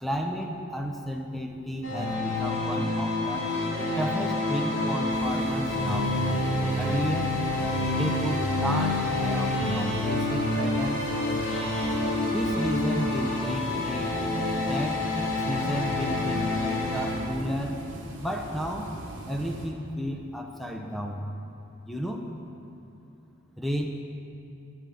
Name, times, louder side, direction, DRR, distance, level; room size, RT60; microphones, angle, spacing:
voice 1, 0.0-3.5 4.0-6.2 6.7-7.4 7.9-11.1 12.3-14.3 14.6-15.0 15.4-17.9 18.2-18.9 19.2-21.2 21.9-22.3 23.6-24.0, equal, ahead, 2 dB, 0.5 m, -32 dB
sound 1, 1.8-17.2, left 2 dB, 65° left, 2.1 m, -28 dB
sound 2, 5.1-19.7, right 1 dB, 60° right, 1.1 m, -41 dB
7.3 x 7.0 x 6.1 m, 2.9 s
head